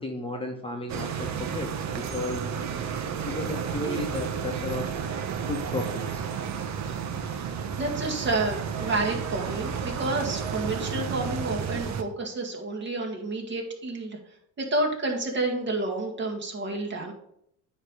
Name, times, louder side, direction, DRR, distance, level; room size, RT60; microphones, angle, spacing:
voice 1, 0.0-2.7 3.2-4.9 5.4-6.3, left 2 dB, 15° left, 1 dB, 1.1 m, -34 dB
sound 1, 0.9-12.0, right 7 dB, 50° right, 1.0 m, -32 dB
voice 2, 7.4-14.2 14.6-17.1, right 2 dB, 30° right, 0 dB, 2.1 m, -30 dB
9.5 x 3.3 x 6.7 m, 0.74 s
cardioid pair, 110°, 35 cm